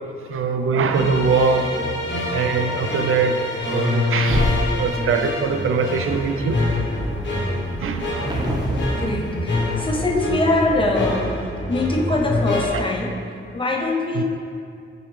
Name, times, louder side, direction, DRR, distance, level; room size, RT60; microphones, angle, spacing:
voice 1, 0.3-1.7 2.3-6.6 7.8-8.4 12.7-12.8 14.2-14.3, right 5 dB, 80° right, 6 dB, 0.4 m, -22 dB
sound 1, 0.9-12.7, left 2 dB, 60° left, 1.1 m, -25 dB
Thump thud, 3.4-7.5, equal, 60° right, 1.4 m, -30 dB
sound 2, 4.6-5.1 5.6-10.4, right 1 dB, 20° right, 0.7 m, -32 dB
voice 2, 8.9-11.4 11.6-13.2 13.5-14.2, left 2 dB, 25° left, 1 dB, 0.5 m, -23 dB
6.0 x 5.2 x 3.2 m, 2.4 s
wide cardioid pair, 155°, 21 cm